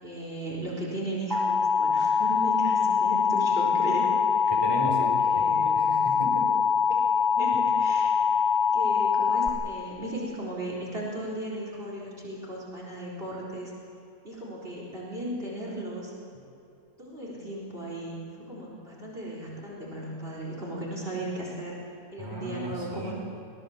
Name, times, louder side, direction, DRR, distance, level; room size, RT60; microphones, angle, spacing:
voice 1, 0.0-4.2 4.4-4.6 5.2-5.9 6.9-7.0 7.4-8.3 8.7-13.7 14.2-16.1 17.0-18.2 18.5-21.8 22.1-23.1, right 1 dB, 35° right, -4 dB, 4.3 m, -36 dB
Alarm, 1.3-9.5, left 6 dB, ahead, 1.0 m, -24 dB
voice 2, 4.5-6.5 22.2-23.1, equal, 15° right, -2 dB, 4.3 m, -35 dB
23.5 x 18.5 x 7.3 m, 2.7 s
omnidirectional pair, 1.8 m